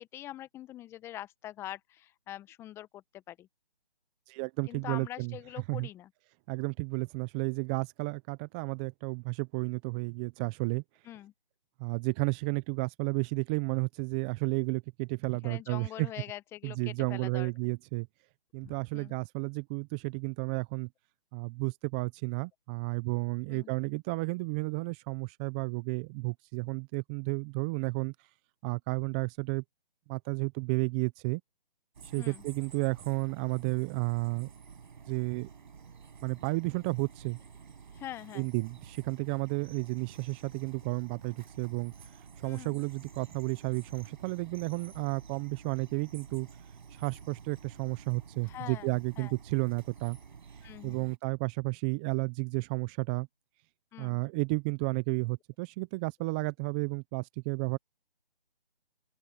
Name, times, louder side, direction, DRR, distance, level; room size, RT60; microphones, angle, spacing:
voice 1, 0.0-3.5 4.7-6.1 11.1-11.3 15.4-17.5 18.6-19.1 23.5-23.7 32.2-32.4 37.9-38.5 42.5-42.8 48.5-49.3 50.6-51.1 53.9-54.2, left 13 dB, 10° left, 1.2 m, -44 dB
voice 2, 4.3-5.4 5.7-5.9 6.5-10.8 11.8-16.1 16.6-18.1 18.5-20.9 21.3-28.1 28.6-29.6 30.1-31.4 32.1-34.5 35.1-35.5 36.2-37.4 38.3-41.9 42.4-46.5 47.0-50.2 50.8-53.3 54.0-57.8, right 29 dB, 10° right, 0.7 m, -32 dB
sound 1, 31.9-51.2, right 6 dB, 50° right, 6.8 m, -51 dB
open air
figure-of-eight pair, 150°, 30 cm